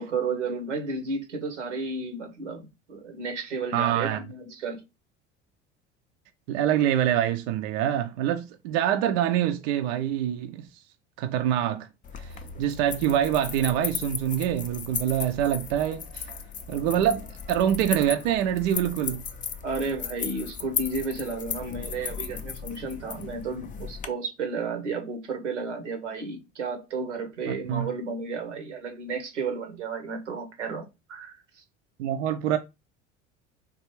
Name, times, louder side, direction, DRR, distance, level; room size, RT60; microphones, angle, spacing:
voice 1, 0.0-4.8 12.5-12.6 19.6-31.6, right 4 dB, 85° right, 0.8 m, -32 dB
voice 2, 3.7-4.2 6.5-10.7 11.2-11.9 12.2-16.2 16.7-19.2 27.5-27.9 32.0-32.6, right 10 dB, 60° right, 0.4 m, -25 dB
sound 1, 12.0-24.1, left 6 dB, 25° left, 0.4 m, -36 dB
3.5 x 2.4 x 3.0 m
figure-of-eight pair, 65°, 35 cm